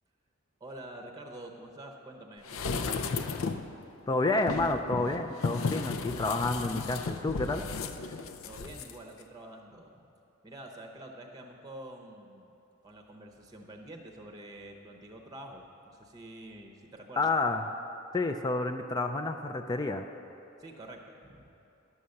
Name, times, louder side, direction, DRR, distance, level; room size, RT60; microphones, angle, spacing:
voice 1, 0.6-3.5 8.4-9.9 10.4-12.5 12.8-17.3 20.6-21.4, right 1 dB, 20° right, 2 dB, 0.8 m, -47 dB
sound 1, 2.5-3.7 4.4-8.9 9.2-9.3, left 4 dB, 85° left, 0.5 m, -34 dB
voice 2, 4.1-7.6 17.2-17.7 18.1-20.1, left 3 dB, 20° left, 5 dB, 0.3 m, -29 dB
11.0 x 7.0 x 6.4 m, 2.9 s
head